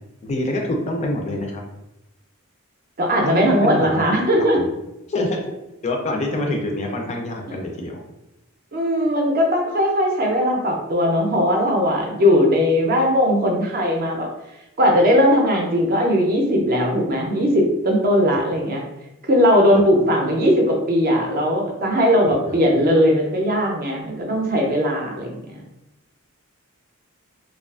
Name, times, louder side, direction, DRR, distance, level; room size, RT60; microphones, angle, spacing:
voice 1, 0.2-1.6 3.2-4.0 4.4-4.7 5.1-5.4 5.8-8.0 19.7-19.8 22.2-22.3, left 1 dB, 30° left, 1 dB, 0.3 m, -26 dB
voice 2, 3.0-4.6 8.7-14.3 14.8-18.8 19.3-25.6, equal, 45° right, 0 dB, 0.5 m, -19 dB
2.4 x 2.3 x 2.3 m, 0.92 s
head